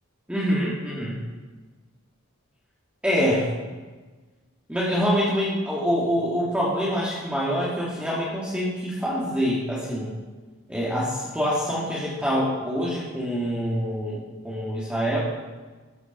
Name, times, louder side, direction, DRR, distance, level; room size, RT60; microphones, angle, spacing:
voice 1, 0.3-1.2 3.0-3.5 4.7-10.1 10.7-15.2, equal, 5° right, -7 dB, 2.6 m, -25 dB
13.0 x 9.5 x 7.0 m, 1.3 s
head